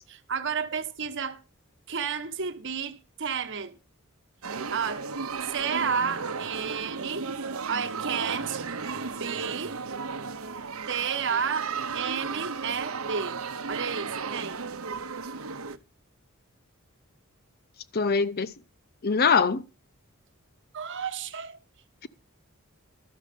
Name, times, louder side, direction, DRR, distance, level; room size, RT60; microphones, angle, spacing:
voice 1, 0.1-1.4 1.9-3.7 4.7-5.1 5.4-7.3 7.7-8.7 9.1-9.8 10.9-13.4 13.7-14.6 20.7-21.6, right 6 dB, 60° right, 1.1 m, -31 dB
sound 1, 4.4-15.8, right 5 dB, 75° right, 0.9 m, -35 dB
voice 2, 17.9-18.5 19.0-19.6, left 5 dB, 45° left, 0.6 m, -23 dB
12.5 x 6.3 x 6.8 m
head